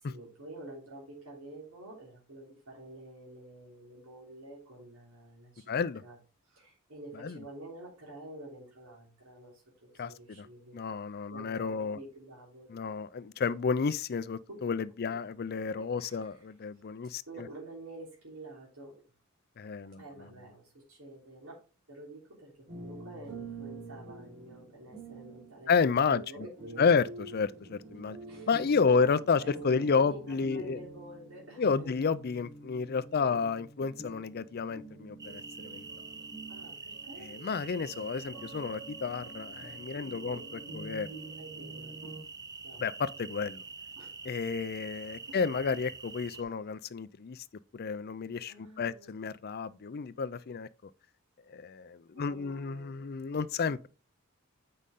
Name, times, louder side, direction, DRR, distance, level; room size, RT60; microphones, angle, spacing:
voice 1, 0.0-6.2 6.4-10.9 11.3-12.9 14.5-14.6 15.8-16.4 17.3-18.9 19.9-21.6 21.9-27.0 28.3-28.5 28.9-29.1 29.4-31.9 33.1-33.5 36.5-37.3 40.0-40.5 41.4-42.0 42.6-42.8 43.9-44.1 45.2-45.4 46.3-46.4 48.4-49.2 52.1-53.1, right 1 dB, 80° right, 3.3 m, -49 dB
voice 2, 5.7-6.0 7.1-7.4 10.0-10.5 10.7-12.0 12.7-17.2 19.6-20.0 25.7-26.5 26.8-27.1 27.3-28.2 28.5-30.8 31.6-35.8 37.2-40.4 40.7-41.1 42.8-43.6 44.3-47.4 47.7-50.7 51.5-53.9, left 5 dB, 45° left, 0.4 m, -31 dB
sound 1, 22.7-42.2, right 2 dB, 55° right, 4.6 m, -47 dB
sound 2, 35.2-46.4, right 4 dB, 15° right, 0.5 m, -46 dB
8.4 x 5.3 x 3.7 m
head